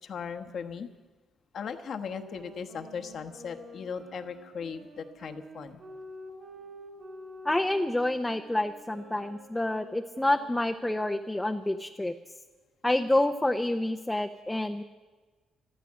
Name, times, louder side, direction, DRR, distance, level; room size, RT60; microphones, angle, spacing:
voice 1, 0.0-0.9 1.5-5.8, left 6 dB, 60° left, 7 dB, 1.2 m, -38 dB
sound 1, 2.0-11.7, equal, 45° right, 3.1 m, -48 dB
voice 2, 7.4-12.1 12.8-14.8, left 1 dB, 10° left, 5 dB, 0.7 m, -28 dB
14.5 x 13.0 x 7.4 m, 1.3 s
cardioid pair, 90°, 0 cm